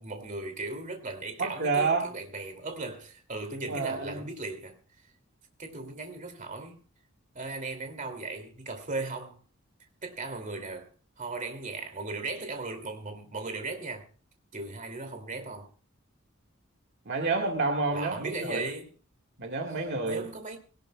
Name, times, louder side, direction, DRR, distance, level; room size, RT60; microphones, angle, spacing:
voice 1, 0.0-4.8 5.6-6.8 7.3-9.4 10.0-10.9 11.2-14.1 14.5-15.7 17.9-18.9 20.1-20.6, right 3 dB, 40° right, 2.7 m, -37 dB
voice 2, 1.4-2.1 3.7-4.3 17.1-18.7 19.4-20.3, right 3 dB, 55° right, 1.9 m, -29 dB
22.0 x 18.0 x 2.3 m
head